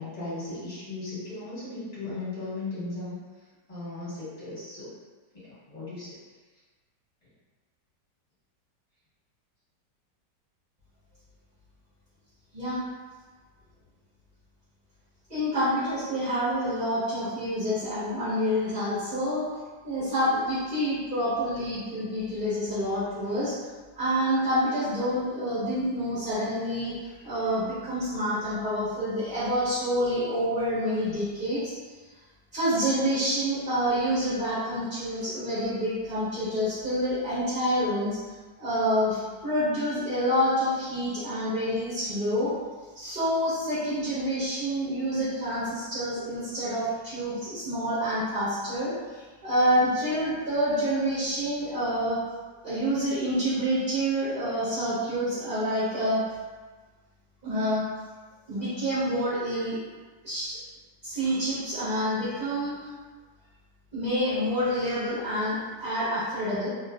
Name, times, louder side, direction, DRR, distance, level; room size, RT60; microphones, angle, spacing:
voice 1, 0.0-3.2 3.7-4.9 5.3-6.2, left 2 dB, 25° left, -12 dB, 1.4 m, -36 dB
voice 2, 15.3-19.5 19.8-23.6 23.9-31.7 32.5-38.2 38.6-42.5 42.9-52.2 52.6-56.2 57.4-57.8 58.5-59.8 60.2-60.6 61.0-62.9 63.9-66.7, equal, 30° right, -13 dB, 1.1 m, -27 dB
3.2 x 2.9 x 2.3 m, 1.3 s
omnidirectional pair, 2.0 m